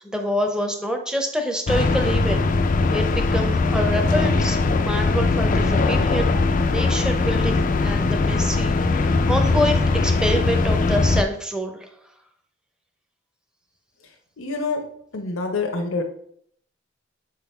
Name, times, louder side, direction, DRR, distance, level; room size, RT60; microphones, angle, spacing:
voice 1, 0.0-2.4 2.9-11.9, equal, 5° right, 3 dB, 0.7 m, -26 dB
sound 1, 1.7-11.2, left 3 dB, 40° left, 0.4 m, -20 dB
voice 2, 14.4-14.8 15.1-16.0, left 3 dB, 90° left, 3 dB, 0.9 m, -26 dB
7.6 x 3.9 x 4.4 m, 0.66 s
head